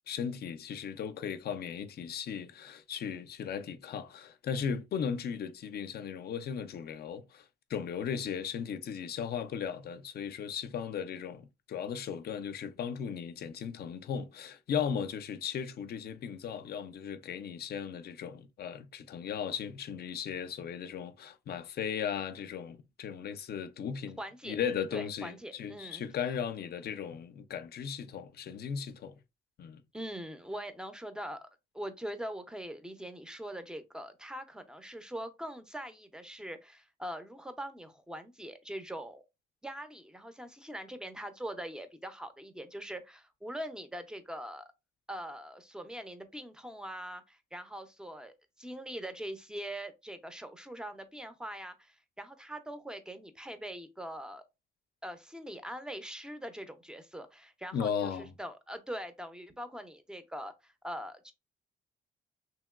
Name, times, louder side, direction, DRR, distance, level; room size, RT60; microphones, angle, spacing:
voice 1, 0.1-7.4 7.7-24.2 24.4-29.2 29.6-29.8 57.7-58.3, left 7 dB, 55° left, 0.4 m, -36 dB
voice 2, 24.2-24.6 24.9-26.3 29.9-31.5 31.7-39.2 39.6-44.7 45.1-54.4 55.0-61.3, equal, 5° right, 0.5 m, -42 dB
2.9 x 2.9 x 2.3 m
cardioid pair, 90°, 20 cm